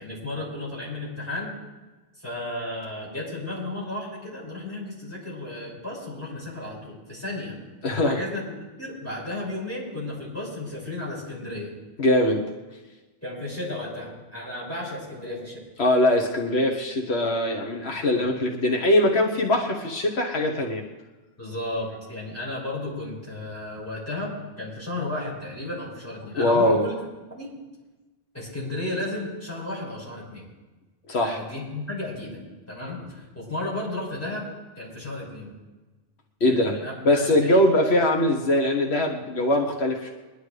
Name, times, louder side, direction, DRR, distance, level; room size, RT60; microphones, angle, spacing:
voice 1, 0.0-1.5 2.2-7.6 8.0-8.4 8.8-11.7 13.2-15.6 17.8-18.3 21.4-27.0 27.3-27.5 28.3-30.5 31.2-32.4 32.7-34.5 34.8-35.5 36.4-37.6, left 2 dB, 15° left, -5 dB, 6.0 m, -33 dB
voice 2, 7.8-8.2 12.0-12.5 15.8-20.8 26.3-26.8 31.1-31.4 36.4-40.1, left 1 dB, 85° left, 1 dB, 1.5 m, -22 dB
23.0 x 11.5 x 3.3 m, 1.2 s
omnidirectional pair, 1.1 m